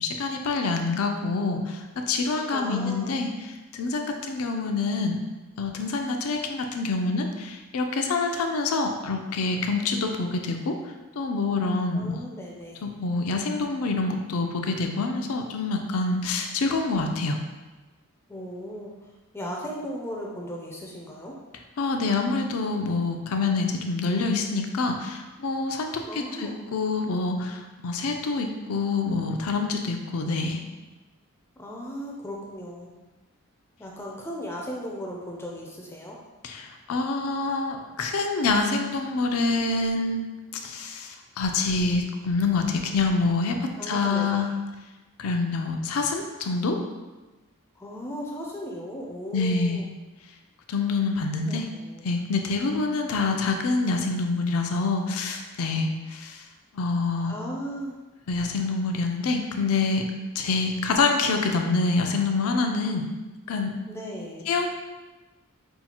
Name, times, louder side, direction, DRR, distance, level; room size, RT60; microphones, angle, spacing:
voice 1, 0.0-1.8 2.1-3.3 3.7-5.2 5.6-10.7 11.2-12.2 12.8-17.4 21.8-25.9 26.4-30.6 36.4-40.2 40.6-44.5 45.2-46.8 49.3-49.8 50.7-51.7 52.0-56.3 56.8-57.3 58.3-60.0 60.4-63.1 63.5-63.7 64.5-64.7, left 3 dB, 85° left, 4 dB, 0.5 m, -26 dB
voice 2, 2.5-3.1 11.9-12.8 18.3-18.9 19.3-21.4 26.1-26.6 31.6-32.9 33.8-36.2 43.8-44.5 47.8-49.9 51.3-52.1 57.2-58.0 63.9-64.5, equal, 10° left, -2 dB, 0.3 m, -36 dB
5.5 x 2.3 x 2.8 m, 1.2 s
head